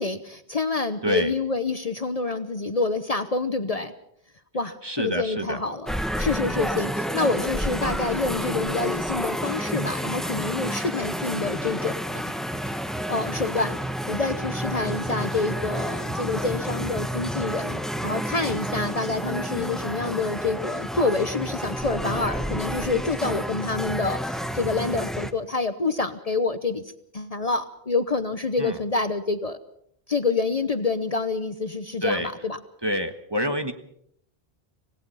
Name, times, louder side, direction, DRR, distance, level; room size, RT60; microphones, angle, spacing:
voice 1, 0.0-3.9 4.5-12.3 13.1-13.8 14.1-26.8 27.1-29.6 30.1-32.6 33.4-33.6, left 3 dB, 40° left, 10 dB, 1.0 m, -27 dB
voice 2, 4.8-5.6 28.6-28.8 32.0-32.3 32.8-33.7, equal, 25° right, 7 dB, 1.5 m, -27 dB
sound 1, 5.9-25.3, equal, ahead, 1.0 m, -30 dB
26.0 x 18.0 x 5.6 m, 0.69 s
omnidirectional pair, 1.0 m